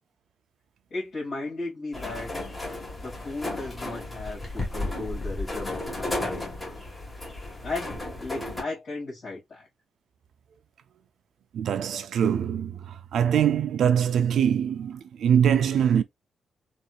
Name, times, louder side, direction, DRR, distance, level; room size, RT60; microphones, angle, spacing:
voice 1, 0.9-2.3 3.0-6.5 7.6-9.7, left 2 dB, 55° left, 2.2 m, -35 dB
sound 1, 1.9-8.6, left 2 dB, 20° left, 1.6 m, -34 dB
voice 2, 11.5-16.0, right 8 dB, 80° right, 0.3 m, -23 dB
4.2 x 2.6 x 2.4 m
wide cardioid pair, 140°, 0 cm